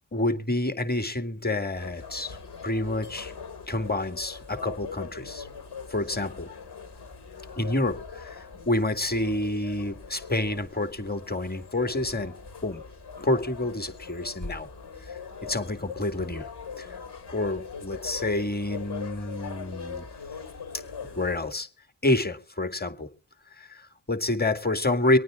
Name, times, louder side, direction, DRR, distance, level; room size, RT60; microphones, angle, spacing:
voice 1, 0.1-2.4 2.6-3.3 3.7-5.5 5.9-6.5 7.6-12.3 12.6-12.8 13.2-14.7 15.0-16.5 16.8-17.0 17.3-20.1 21.2-21.7 22.0-23.1 23.6-25.2, left 2 dB, 25° left, 8 dB, 2.0 m, -28 dB
sound 1, 1.7-21.5, left 5 dB, 70° left, 2.9 m, -41 dB
24.0 x 9.3 x 3.7 m, 0.41 s
cardioid pair, 45°, 41 cm